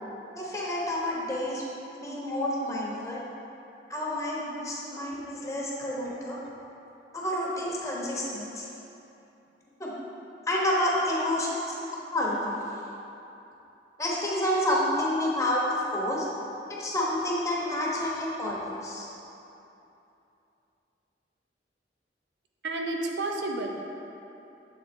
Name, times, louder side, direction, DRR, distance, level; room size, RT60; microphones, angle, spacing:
voice 1, 0.4-1.6 2.0-3.2 3.9-6.4 7.1-8.7 9.8-9.9 10.5-11.7 12.1-12.6 14.0-16.3 16.7-19.1, left 1 dB, 15° left, -5 dB, 0.9 m, -29 dB
voice 2, 2.8-3.2 4.6-4.8 5.4-5.5 11.0-11.1 14.9-15.0 22.6-23.9, right 2 dB, 65° right, 1 dB, 0.6 m, -33 dB
7.5 x 3.7 x 4.3 m, 2.8 s
head